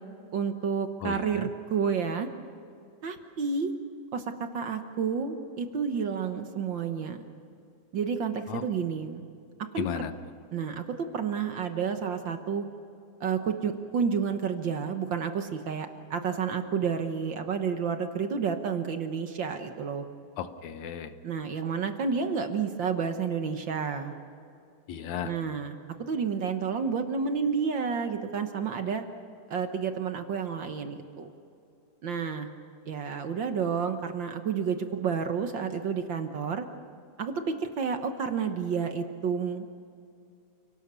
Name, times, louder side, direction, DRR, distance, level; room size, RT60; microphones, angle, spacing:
voice 1, 0.3-2.3 3.0-3.7 4.1-7.2 7.9-9.2 9.7-10.1 10.5-12.7 13.2-20.0 21.2-24.1 25.2-29.0 29.5-31.3 32.0-32.5 32.9-36.7 37.2-39.8, right 6 dB, 60° right, 7 dB, 1.3 m, -30 dB
voice 2, 1.0-1.5 8.5-8.6 9.8-10.1 20.4-21.1 24.9-25.4, left 9 dB, 70° left, 10 dB, 2.3 m, -34 dB
29.5 x 18.5 x 6.9 m, 2.5 s
omnidirectional pair, 3.5 m